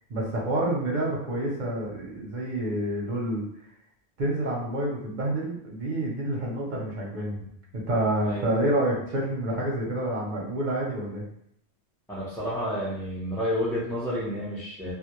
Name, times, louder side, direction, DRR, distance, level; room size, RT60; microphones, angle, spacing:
voice 1, 0.1-3.4 4.2-7.5 7.7-11.2, right 1 dB, 50° right, -3 dB, 0.6 m, -28 dB
voice 2, 12.1-14.9, equal, 5° left, -9 dB, 0.4 m, -30 dB
2.1 x 2.1 x 2.9 m, 0.70 s
omnidirectional pair, 1.2 m